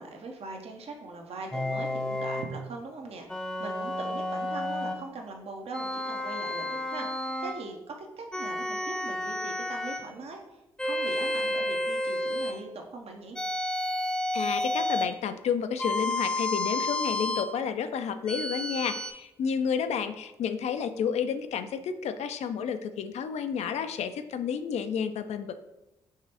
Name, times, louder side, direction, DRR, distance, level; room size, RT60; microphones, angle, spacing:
voice 1, 0.0-13.4, right 3 dB, 55° right, 2 dB, 0.7 m, -41 dB
sound 1, 1.5-2.5 3.3-5.0 5.7-7.6 8.3-10.1 10.8-12.6 13.4-15.2 15.8-17.5 18.3-19.1, left 1 dB, 5° left, 0.5 m, -31 dB
voice 2, 14.3-25.5, left 7 dB, 65° left, 10 dB, 0.4 m, -31 dB
4.8 x 3.2 x 2.8 m, 0.94 s
hypercardioid pair, 40°, 12 cm